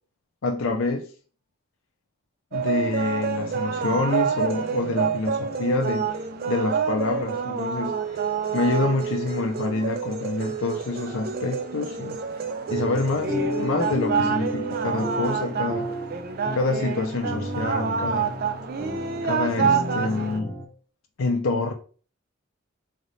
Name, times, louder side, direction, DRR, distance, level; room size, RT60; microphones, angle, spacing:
voice 1, 0.4-1.1 2.5-6.1 6.5-8.0 8.5-12.2 12.7-15.9 16.5-18.3 19.2-20.5 21.2-21.7, left 3 dB, 75° left, 0.5 m, -27 dB
sound 1, 2.5-20.4, right 6 dB, 45° right, 0.3 m, -28 dB
sound 2, 12.7-20.6, left 1 dB, 5° right, 0.9 m, -32 dB
3.9 x 3.3 x 2.6 m
head